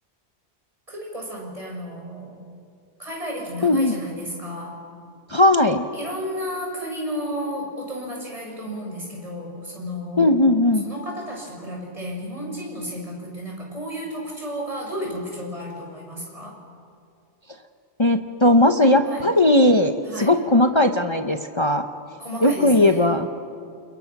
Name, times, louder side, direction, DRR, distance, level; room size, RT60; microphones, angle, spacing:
voice 1, 0.9-2.4 3.0-4.8 5.9-10.6 10.8-16.6 19.0-19.3 20.1-20.3 22.2-23.1, equal, 30° right, -1 dB, 6.6 m, -33 dB
voice 2, 3.6-3.9 5.3-5.8 10.2-10.8 18.0-21.8 22.4-23.3, left 1 dB, 25° left, 6 dB, 0.9 m, -18 dB
30.0 x 29.0 x 6.1 m, 2.4 s
omnidirectional pair, 1.2 m